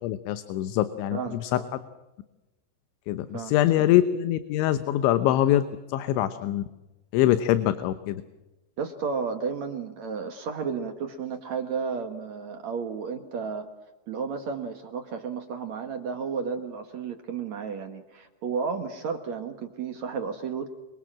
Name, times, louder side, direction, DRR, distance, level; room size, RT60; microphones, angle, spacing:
voice 1, 0.0-1.6 3.1-6.6 7.1-8.2, left 13 dB, 80° left, 11 dB, 3.3 m, -24 dB
voice 2, 1.1-1.7 3.3-3.9 8.8-13.7 14.1-20.7, right 5 dB, 65° right, 6 dB, 1.8 m, -33 dB
27.5 x 24.0 x 7.5 m, 1.1 s
omnidirectional pair, 5.4 m